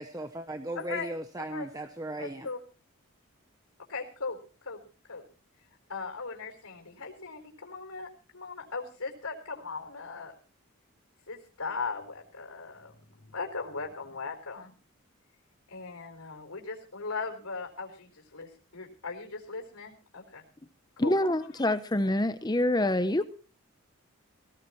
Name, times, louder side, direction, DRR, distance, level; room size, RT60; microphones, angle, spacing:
voice 1, 0.0-2.5, right 1 dB, 15° right, 8 dB, 0.8 m, -37 dB
voice 2, 0.7-1.1 1.4-1.7 2.2-2.6 3.9-4.4 4.6-4.8 5.1-5.2 5.9-10.3 11.3-14.7 15.7-20.4 21.0-21.1, left 4 dB, 90° left, 2 dB, 4.5 m, -38 dB
voice 3, 21.0-23.2, left 1 dB, 20° left, 12 dB, 0.7 m, -26 dB
19.0 x 18.0 x 3.1 m, 0.36 s
head